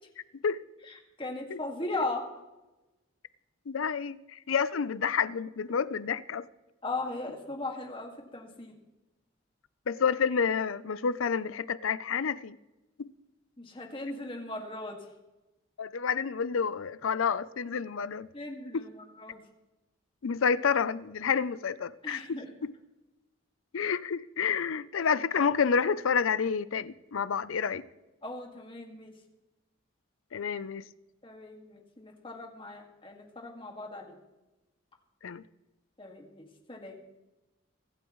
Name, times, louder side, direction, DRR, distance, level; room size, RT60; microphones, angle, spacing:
voice 1, 0.9-2.2 6.8-8.7 13.6-15.0 18.3-19.4 22.0-22.5 28.2-29.1 31.2-34.2 36.0-37.0, left 2 dB, 25° left, 2.0 m, -38 dB
voice 2, 3.7-6.5 9.9-12.6 13.0-13.1 15.8-18.3 18.7-18.8 20.2-22.2 22.6-22.7 23.7-27.8 30.3-30.8 35.2-35.4, left 6 dB, 80° left, 0.5 m, -29 dB
24.0 x 11.5 x 3.1 m
head